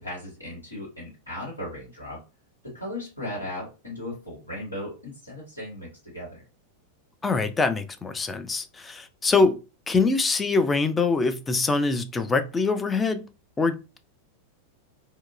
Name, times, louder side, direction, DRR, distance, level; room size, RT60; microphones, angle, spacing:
voice 1, 0.0-2.2 2.6-6.4, left 1 dB, 85° left, 1.4 m, -37 dB
voice 2, 7.2-9.6 9.9-13.3 13.6-14.0, left 4 dB, 15° left, 0.4 m, -24 dB
2.8 x 2.2 x 2.5 m
figure-of-eight pair, 90°, 0 cm